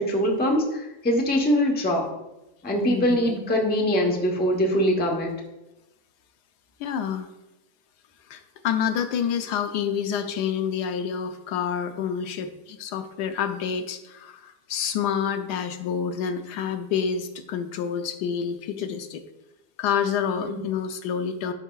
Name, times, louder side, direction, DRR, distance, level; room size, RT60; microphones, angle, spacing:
voice 1, 0.0-2.1 2.6-5.3 20.4-20.7, equal, 10° left, 0 dB, 0.6 m, -23 dB
voice 2, 2.9-3.4 6.8-7.3 8.3-19.2 19.8-21.5, left 7 dB, 80° left, 8 dB, 1.2 m, -28 dB
11.5 x 5.5 x 2.3 m, 0.97 s
omnidirectional pair, 1.8 m